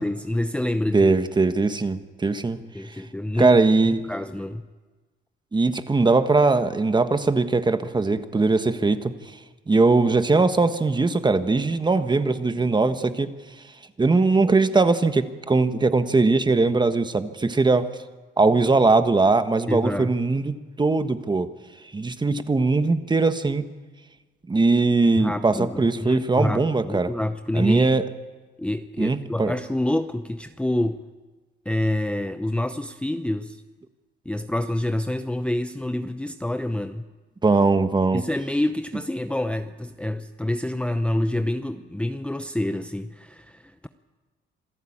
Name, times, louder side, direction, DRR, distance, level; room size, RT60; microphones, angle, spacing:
voice 1, 0.0-1.1 2.7-3.6 3.9-4.7 19.7-20.1 25.2-27.9 28.6-31.0 31.7-33.6 34.3-37.1 38.1-43.9, left 1 dB, 5° left, 9 dB, 0.7 m, -27 dB
voice 2, 0.9-2.6 3.4-4.0 5.5-9.1 9.7-13.3 14.0-17.9 18.4-21.5 21.9-23.6 24.5-27.1 27.5-28.0 29.0-29.5 37.4-38.2, right 3 dB, 20° right, 10 dB, 1.4 m, -20 dB
27.0 x 14.0 x 8.8 m, 1.3 s
cardioid pair, 90°, 20 cm